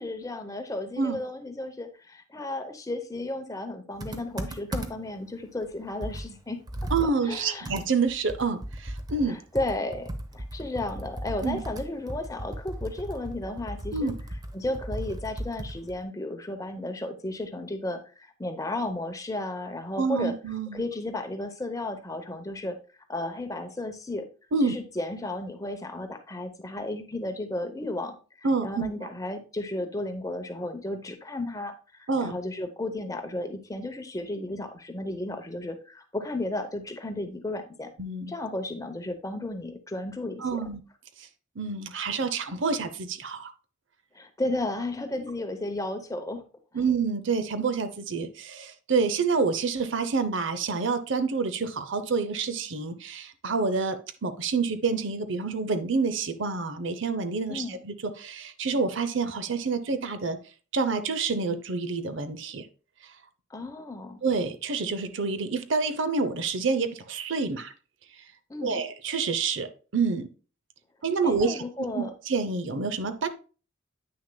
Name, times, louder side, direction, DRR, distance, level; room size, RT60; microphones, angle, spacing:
voice 1, 0.0-6.6 7.3-7.7 9.3-14.1 14.5-20.3 20.7-22.8 23.1-24.2 24.6-37.9 38.3-40.6 44.1-46.4 57.5-57.8 63.5-64.2 68.5-68.8 71.2-72.1, left 2 dB, 15° left, 7 dB, 0.7 m, -34 dB
Computer keyboard, 4.0-5.2 5.6-5.7 6.0-9.3 9.5-16.0, right 1 dB, 20° right, 0.6 m, -36 dB
voice 2, 6.9-9.4 11.4-11.6 13.9-14.2 20.0-20.8 24.5-24.7 28.4-28.9 32.1-32.3 38.0-38.3 40.4-40.8 41.6-43.5 46.7-60.4 60.7-62.7 64.2-67.7 68.6-70.3 71.0-71.6 71.9-73.3, right 4 dB, 60° right, 12 dB, 0.6 m, -28 dB
8.8 x 6.3 x 2.2 m, 0.35 s
head